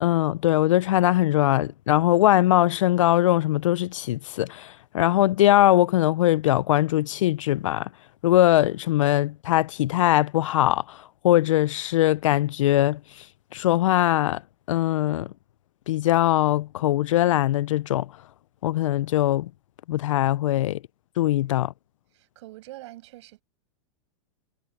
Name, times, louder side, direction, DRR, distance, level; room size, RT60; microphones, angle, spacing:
voice 1, 0.0-7.9 8.2-11.0 11.2-13.0 13.5-14.4 14.7-15.3 15.9-18.1 18.6-19.5 19.9-20.8 21.2-21.7, left 14 dB, 85° left, 0.5 m, -21 dB
voice 2, 22.1-23.4, right 17 dB, 65° right, 6.2 m, -44 dB
supercardioid pair, 140°, 16 cm